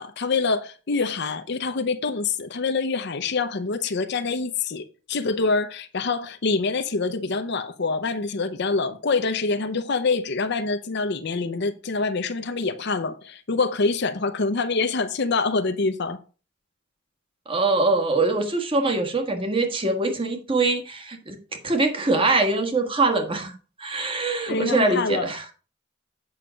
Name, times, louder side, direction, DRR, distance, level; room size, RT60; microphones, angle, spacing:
voice 1, 0.0-16.2 24.5-25.3, left 4 dB, 55° left, 0.7 m, -25 dB
voice 2, 17.5-23.5 23.8-25.4, right 3 dB, 25° right, 1.4 m, -23 dB
8.6 x 5.7 x 5.0 m
head